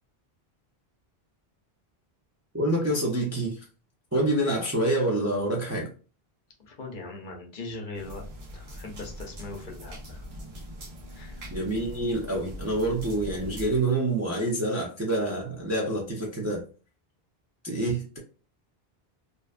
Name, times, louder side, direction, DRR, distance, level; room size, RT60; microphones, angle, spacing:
voice 1, 2.5-3.6 4.1-5.9 11.5-16.6 17.6-18.2, right 1 dB, 25° right, -2 dB, 0.3 m, -27 dB
voice 2, 6.6-8.3 8.5-10.3 11.1-11.4, left 3 dB, 55° left, 1 dB, 0.7 m, -40 dB
sound 1, 7.9-13.8, equal, 65° right, 0.9 m, -41 dB
2.6 x 2.2 x 2.4 m, 0.36 s
omnidirectional pair, 1.0 m